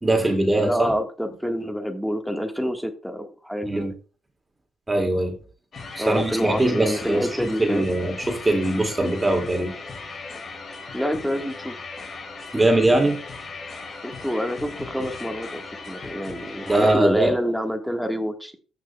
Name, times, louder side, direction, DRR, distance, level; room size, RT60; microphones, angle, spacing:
voice 1, 0.0-0.9 3.6-3.9 4.9-5.3 5.9-9.7 12.5-13.2 16.7-17.3, right 2 dB, 15° right, 2 dB, 2.2 m, -21 dB
voice 2, 0.6-3.9 6.0-7.9 10.9-11.8 14.0-18.6, equal, ahead, 5 dB, 1.5 m, -27 dB
sound 1, 5.7-17.0, left 4 dB, 50° left, 2.1 m, -37 dB
14.0 x 6.2 x 2.3 m, 0.37 s
cardioid pair, 90°, 0 cm